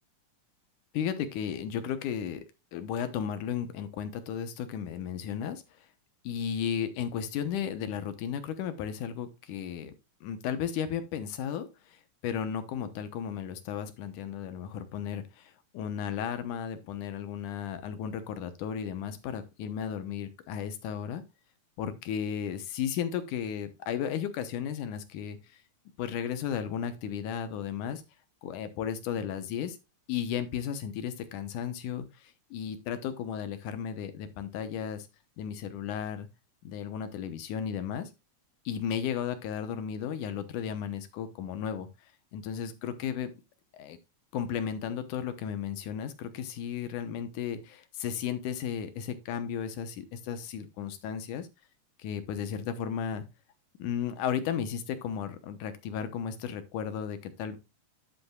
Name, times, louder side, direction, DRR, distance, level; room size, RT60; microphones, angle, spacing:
voice 1, 0.9-2.4 2.7-5.6 6.2-9.9 10.2-21.2 21.8-25.6 26.0-28.0 28.4-29.8 30.1-35.1 35.4-36.3 36.6-38.1 38.7-41.9 42.3-43.3 43.7-44.0 44.3-51.5 52.0-53.2 53.8-57.6, left 8 dB, 85° left, 10 dB, 2.5 m, -34 dB
10.0 x 8.0 x 2.3 m, 0.25 s
omnidirectional pair, 3.5 m